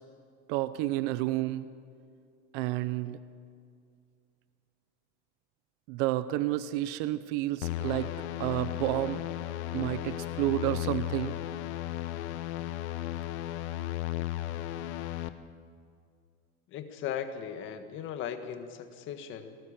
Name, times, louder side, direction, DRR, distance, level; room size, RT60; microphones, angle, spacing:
voice 1, 0.5-1.7 2.5-3.2 5.9-8.1 8.4-9.3 9.7-11.4, right 16 dB, 55° right, 14 dB, 0.7 m, -30 dB
sound 1, 7.6-15.3, left 14 dB, 85° left, 1.2 m, -35 dB
voice 2, 16.7-19.6, left 8 dB, 35° left, 8 dB, 1.6 m, -38 dB
23.0 x 19.0 x 6.7 m, 2.3 s
cardioid pair, 170°, 32 cm